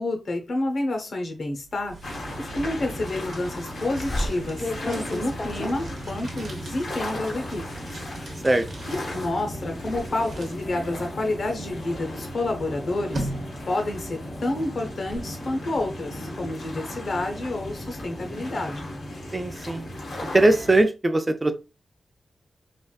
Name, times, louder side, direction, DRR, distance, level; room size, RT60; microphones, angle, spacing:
voice 1, 0.0-2.0 2.4-7.6 7.9-8.0 8.9-13.3 13.7-18.9, left 2 dB, 65° left, 3 dB, 0.9 m, -29 dB
sound 1, 1.5-14.1, right 2 dB, 80° right, 0.9 m, -42 dB
sound 2, 2.0-20.8, left 1 dB, 90° left, 1.2 m, -36 dB
sound 3, 4.0-9.3 9.7-10.1 10.5-12.5 13.1-15.2, left 1 dB, 40° left, 0.6 m, -37 dB
voice 2, 19.3-19.9 20.3-21.5, right 2 dB, 25° right, 8 dB, 0.4 m, -20 dB
3.3 x 2.5 x 2.3 m, 0.29 s
wide cardioid pair, 80°, 0 cm